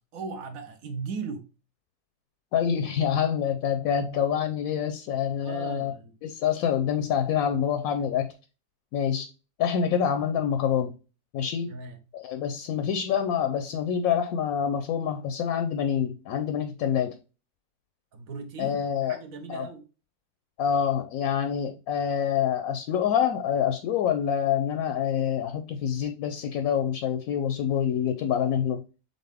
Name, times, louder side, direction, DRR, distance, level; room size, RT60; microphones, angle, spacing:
voice 1, 0.0-1.5 5.4-6.1 11.7-12.0 18.1-19.8, right 4 dB, 60° right, 1.1 m, -38 dB
voice 2, 2.5-5.9 6.2-8.3 8.9-9.3 9.6-10.9 11.3-11.7 12.1-17.2 18.6-19.2 19.5-19.7 20.6-28.8, left 8 dB, 70° left, 0.9 m, -26 dB
4.1 x 3.9 x 3.3 m
omnidirectional pair, 1.8 m